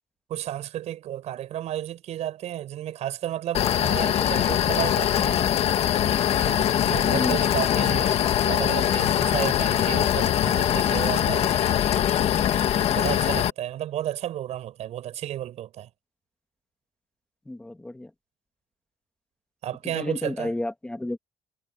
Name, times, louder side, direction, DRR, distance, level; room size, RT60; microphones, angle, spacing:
voice 1, 0.3-5.5 6.3-11.5 12.9-15.9 19.6-20.5, right 12 dB, 60° right, 6.5 m, -32 dB
sound 1, 3.5-13.5, left 10 dB, 50° left, 1.4 m, -22 dB
voice 2, 7.0-7.4 12.8-12.9 17.5-18.1 19.9-21.2, left 1 dB, 5° left, 1.5 m, -31 dB
cardioid pair, 175°, 13 cm